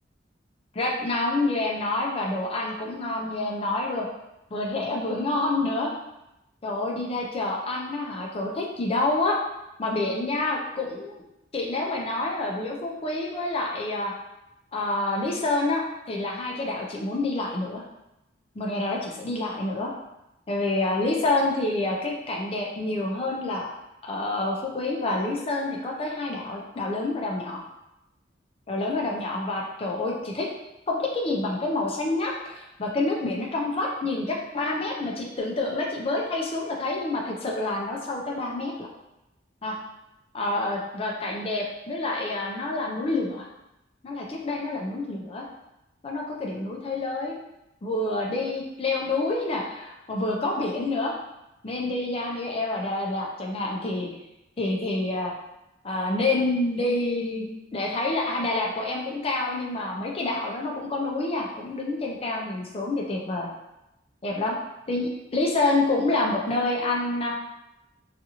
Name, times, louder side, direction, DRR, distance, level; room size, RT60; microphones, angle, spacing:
voice 1, 0.7-4.1 4.5-5.9 6.6-9.4 9.8-11.1 11.5-14.1 14.7-17.8 18.6-19.9 20.5-23.7 24.1-27.6 28.7-30.5 30.9-38.9 39.6-39.8 40.3-43.5 44.0-45.4 46.0-47.4 47.8-51.1 51.6-54.1 54.6-55.3 55.8-57.5 57.7-63.5 64.2-64.6 64.9-67.3, left 2 dB, 30° left, -1 dB, 0.4 m, -27 dB
2.6 x 2.4 x 2.8 m, 0.92 s
head